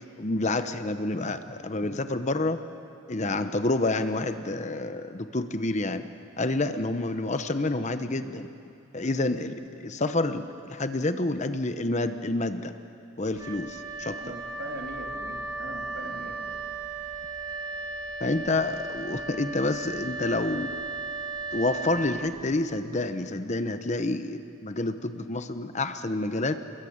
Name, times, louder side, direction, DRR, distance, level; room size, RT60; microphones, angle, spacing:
voice 1, 0.2-2.6 3.1-6.0 6.4-8.5 8.9-12.7 13.2-14.2 18.2-20.7 21.5-26.6, left 2 dB, 35° left, 9 dB, 0.9 m, -28 dB
Wind instrument woodwind instrument, 13.3-22.8, right 3 dB, 20° right, 2.1 m, -36 dB
voice 2, 14.2-16.6, right 1 dB, 55° right, 0 dB, 3.7 m, -40 dB
29.0 x 21.5 x 8.8 m, 2.6 s
head